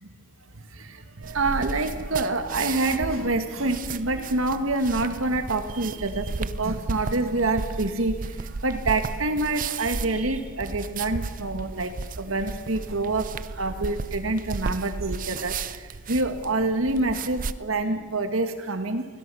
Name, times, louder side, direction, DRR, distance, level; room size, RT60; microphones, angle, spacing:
voice 1, 0.6-19.1, right 2 dB, 85° right, 8 dB, 1.9 m, -27 dB
sound 1, 1.2-17.5, right 4 dB, 40° right, 0.6 m, -34 dB
22.0 x 17.0 x 7.0 m, 1.5 s
head